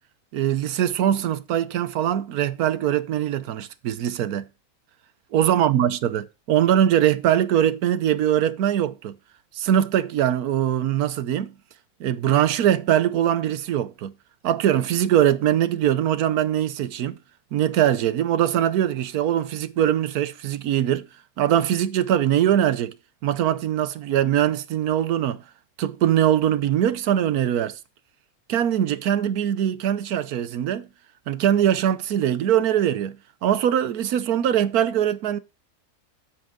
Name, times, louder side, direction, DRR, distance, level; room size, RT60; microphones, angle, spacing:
voice 1, 0.3-4.4 5.3-9.1 9.5-11.5 12.0-14.1 14.4-17.2 17.5-21.1 21.4-22.9 23.2-25.4 25.8-27.8 28.5-30.9 31.3-33.2 33.4-35.4, right 10 dB, 85° right, 1.3 m, -22 dB
8.8 x 7.9 x 3.7 m
omnidirectional pair, 1.6 m